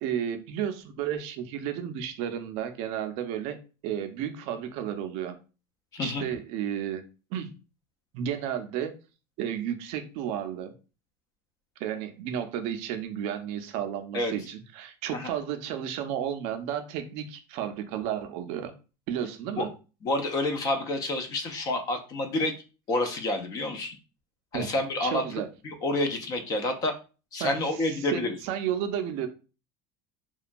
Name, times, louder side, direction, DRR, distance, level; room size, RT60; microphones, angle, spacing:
voice 1, 0.0-3.6 3.8-5.4 6.0-7.0 7.3-7.5 8.1-8.9 9.4-10.7 11.8-18.7 19.1-19.7 24.5-24.7 25.0-25.5 27.4-29.3, right 9 dB, 50° right, 8 dB, 0.4 m, -32 dB
voice 2, 5.9-6.2 14.1-14.3 15.1-15.3 19.6-19.7 20.0-22.5 22.9-24.0 24.5-25.2 25.6-26.9 27.3-28.3, left 2 dB, 25° left, 6 dB, 0.3 m, -28 dB
2.9 x 2.2 x 2.5 m, 0.34 s
cardioid pair, 175°, 14 cm